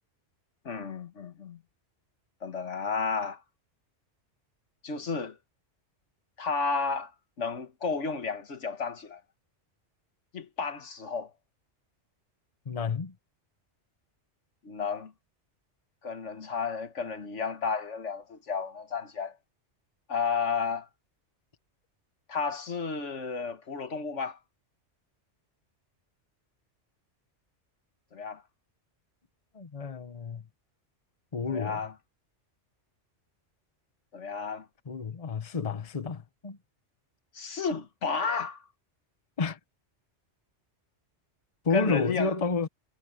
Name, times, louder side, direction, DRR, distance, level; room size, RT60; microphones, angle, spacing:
voice 1, 0.7-1.6 2.4-3.4 4.8-5.4 6.4-7.1 7.4-9.2 10.3-11.3 14.6-15.1 16.0-19.4 20.1-20.9 22.3-24.4 28.1-28.4 31.5-31.9 34.1-34.7 37.3-38.6 41.7-42.3, left 5 dB, 80° left, 1.8 m, -32 dB
voice 2, 12.7-13.1 29.5-30.4 31.3-31.8 34.9-36.6 39.4-39.6 41.6-42.7, left 4 dB, 30° left, 1.1 m, -30 dB
omnidirectional pair, 1.2 m